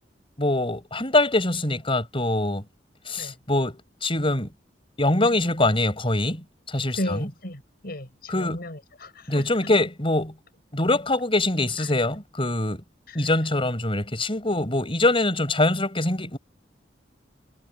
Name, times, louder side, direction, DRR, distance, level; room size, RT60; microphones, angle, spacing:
voice 1, 0.4-2.6 3.1-4.5 5.0-7.3 8.3-8.7 9.3-10.4 10.7-12.8 13.1-16.4, left 2 dB, 30° left, 7.1 m, -24 dB
voice 2, 7.0-9.7 13.1-13.3, left 1 dB, 55° left, 6.2 m, -35 dB
head